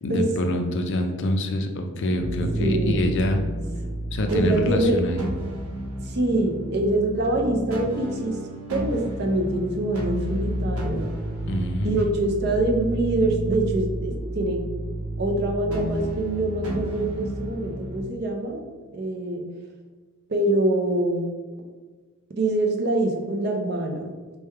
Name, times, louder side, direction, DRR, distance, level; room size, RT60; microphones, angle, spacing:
voice 1, 0.0-3.4 4.1-5.2 11.5-12.1, left 1 dB, 55° left, 5 dB, 0.4 m, -25 dB
sound 1, 2.2-18.0, right 1 dB, 75° right, 0.9 m, -31 dB
voice 2, 2.6-3.0 4.3-5.0 6.0-8.4 8.7-11.0 11.8-14.6 15.2-18.6 18.9-19.5 20.3-21.2 22.4-24.1, right 2 dB, 45° right, 2 dB, 0.5 m, -25 dB
3.3 x 2.2 x 4.4 m, 1.4 s
head